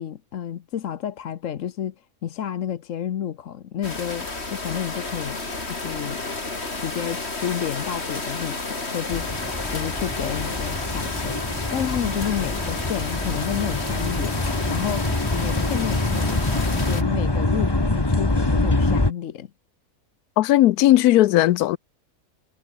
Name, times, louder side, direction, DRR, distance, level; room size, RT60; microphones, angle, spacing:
voice 1, 0.0-1.9 2.2-6.2 6.8-9.3 9.7-14.4 14.7-19.5, left 9 dB, 60° left, 1.2 m, -30 dB
sound 1, 3.8-17.0, left 3 dB, 45° left, 3.4 m, -31 dB
sound 2, 9.1-19.1, left 2 dB, 15° left, 1.6 m, -25 dB
voice 2, 20.4-21.8, left 15 dB, 85° left, 1.1 m, -16 dB
omnidirectional pair, 1.6 m